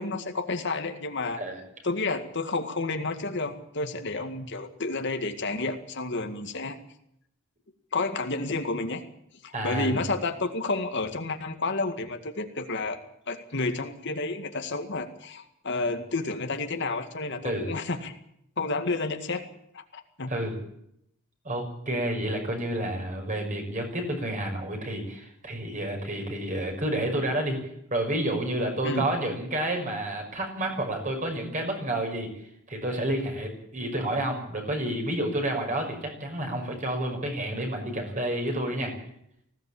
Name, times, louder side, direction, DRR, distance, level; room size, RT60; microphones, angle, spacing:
voice 1, 0.0-1.4 1.8-6.8 7.9-9.0 9.4-18.1 18.6-19.4 19.7-20.3 28.8-29.1, left 3 dB, 55° left, 6 dB, 2.1 m, -30 dB
voice 2, 9.5-10.0 17.4-17.7 20.3-20.5 21.4-27.6 27.9-32.3 32.7-38.9, right 1 dB, 40° right, 3 dB, 5.9 m, -30 dB
20.0 x 16.5 x 8.7 m, 0.76 s
head